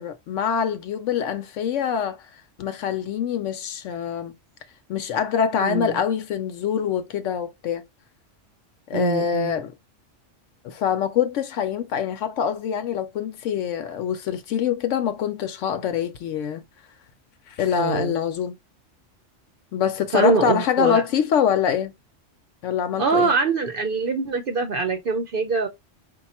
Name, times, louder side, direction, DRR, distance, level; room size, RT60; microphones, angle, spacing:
voice 1, 0.0-2.2 2.6-4.3 4.9-7.8 8.9-9.7 10.6-16.6 17.5-18.5 19.7-21.9 22.6-23.3, left 8 dB, 80° left, 0.9 m, -24 dB
voice 2, 5.6-6.0 8.9-9.5 17.8-18.1 20.1-21.0 23.0-25.7, right 4 dB, 55° right, 0.8 m, -23 dB
5.2 x 2.3 x 4.2 m
omnidirectional pair, 1.3 m